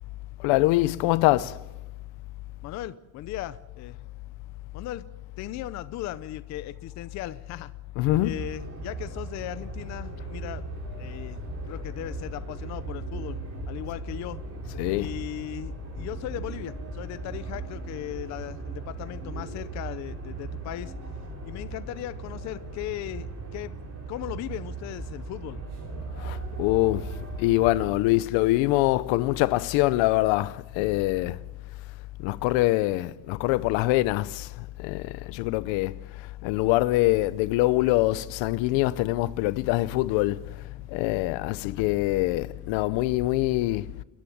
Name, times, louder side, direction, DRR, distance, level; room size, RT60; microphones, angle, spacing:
voice 1, 0.4-1.6 8.0-8.4 14.7-15.1 26.2-31.4 32.2-36.0 36.4-40.4 40.9-43.9, left 18 dB, 65° left, 0.8 m, -24 dB
voice 2, 2.6-4.0 4.7-5.0 5.4-7.7 8.2-10.6 11.0-13.4 13.7-14.4 15.0-20.9 21.4-23.8 24.1-25.6 41.6-41.8, left 13 dB, 35° left, 0.6 m, -37 dB
sound 1, 8.0-27.9, right 4 dB, 30° right, 3.8 m, -38 dB
29.0 x 10.0 x 9.4 m
cardioid pair, 165°, 49 cm